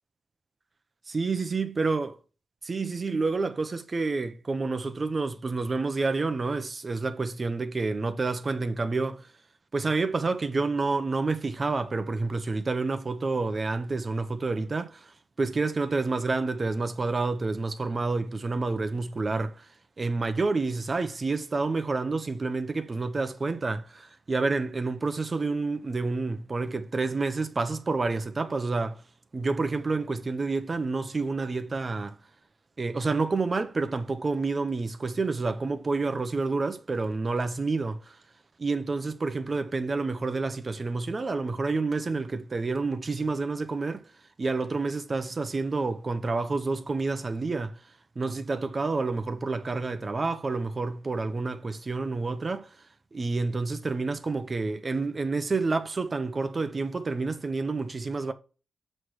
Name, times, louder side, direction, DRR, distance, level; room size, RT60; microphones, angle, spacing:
voice 1, 1.1-2.2 2.6-9.3 9.7-19.7 20.0-29.0 29.3-32.2 32.8-38.2 38.6-44.1 44.4-47.8 48.2-52.7 53.1-58.3, right 3 dB, 35° right, 0.8 m, -29 dB
7.7 x 3.3 x 6.1 m
wide cardioid pair, 125°, 0 cm